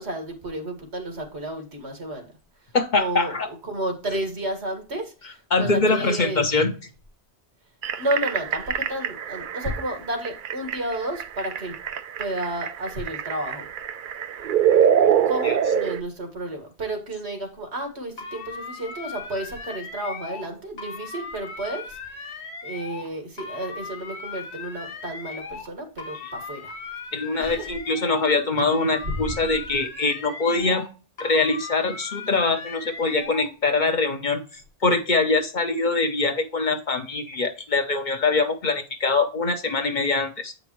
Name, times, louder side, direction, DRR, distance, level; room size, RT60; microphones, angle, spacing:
voice 1, 0.0-2.3 3.0-6.4 8.0-11.7 12.2-13.7 15.3-22.0 22.6-26.7 27.4-27.7, right 1 dB, 85° right, 3 dB, 2.1 m, -31 dB
voice 2, 2.7-3.5 5.5-6.8 15.4-15.6 26.2-26.3 27.1-30.8 31.2-40.5, left 3 dB, 45° left, 6 dB, 1.0 m, -23 dB
sound 1, 7.8-16.0, right 8 dB, 60° right, 0.6 m, -24 dB
sound 2, 18.2-20.5 20.8-23.1 23.4-25.7 26.0-28.3 28.6-30.9 31.2-33.5, left 4 dB, 75° left, 1.3 m, -38 dB
8.4 x 5.2 x 3.0 m, 0.35 s
omnidirectional pair, 1.1 m